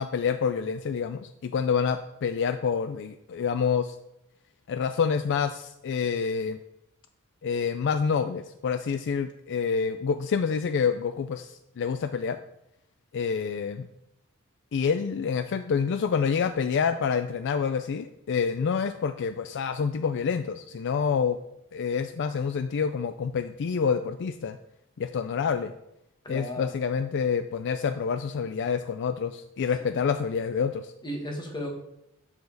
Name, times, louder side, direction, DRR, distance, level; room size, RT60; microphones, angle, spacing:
voice 1, 0.0-4.0 4.7-6.6 7.4-12.4 13.1-13.9 14.7-21.4 21.7-24.6 25.0-25.7 26.3-30.9, left 6 dB, 55° left, 10 dB, 0.4 m, -27 dB
voice 2, 26.2-26.8 29.8-30.0 31.0-31.7, equal, 20° left, 1 dB, 1.5 m, -35 dB
11.5 x 4.9 x 4.0 m, 0.81 s
head